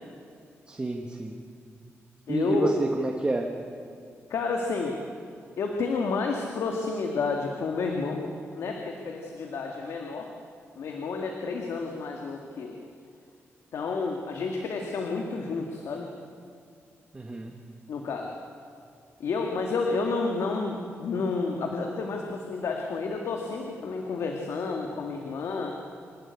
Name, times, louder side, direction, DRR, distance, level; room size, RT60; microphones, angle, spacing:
voice 1, 0.7-1.3 2.3-3.5 17.1-17.6, right 2 dB, 20° right, 2 dB, 1.5 m, -29 dB
voice 2, 2.3-2.7 4.3-5.0 5.6-8.2 8.5-10.3 10.8-12.7 13.7-16.1 17.9-18.3 19.2-25.8, left 4 dB, 80° left, 2 dB, 2.0 m, -30 dB
26.5 x 12.5 x 9.8 m, 2.5 s
wide cardioid pair, 140°, 5 cm